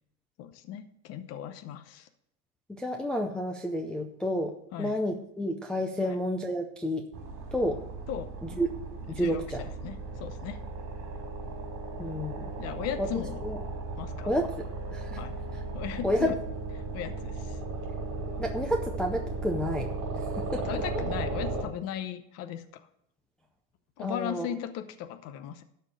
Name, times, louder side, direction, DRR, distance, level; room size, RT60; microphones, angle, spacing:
voice 1, 0.4-2.1 4.7-5.0 6.0-6.2 8.1-8.3 9.1-10.6 12.6-13.4 14.0-14.3 15.1-16.4 16.9-17.6 20.6-22.8 24.0-25.6, left 10 dB, 40° left, 10 dB, 0.8 m, -37 dB
voice 2, 2.7-7.1 7.5-7.8 8.4-8.7 9.1-9.6 12.0-12.5 13.0-13.1 13.4-13.6 14.2-15.2 16.0-16.3 18.4-19.9 20.4-20.7 24.0-24.5, equal, ahead, 1 dB, 0.5 m, -30 dB
sound 1, 7.1-21.6, right 3 dB, 45° right, 3.6 m, -36 dB
12.5 x 4.5 x 7.6 m, 0.73 s
cardioid pair, 160°, 38 cm